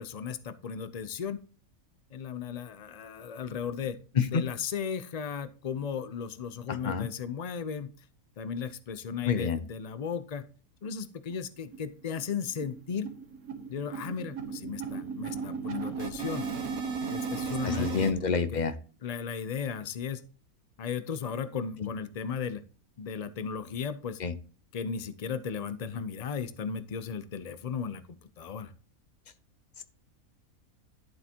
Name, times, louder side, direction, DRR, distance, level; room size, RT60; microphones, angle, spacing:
voice 1, 0.0-1.4 2.1-4.0 4.3-7.9 8.4-10.4 10.8-13.1 13.7-16.5 17.1-18.1 18.5-18.6 19.0-20.2 20.8-22.6 23.0-24.2 24.7-28.7, left 6 dB, 80° left, 12 dB, 0.3 m, -35 dB
voice 2, 9.3-9.6 17.6-18.7 24.2-24.3, left 5 dB, 40° left, 11 dB, 0.7 m, -27 dB
sound 1, 10.8-10.9 11.3-11.4 11.7-11.9 12.2-18.1, right 5 dB, 75° right, 1.7 m, -36 dB
11.5 x 7.7 x 2.8 m, 0.38 s
omnidirectional pair, 1.5 m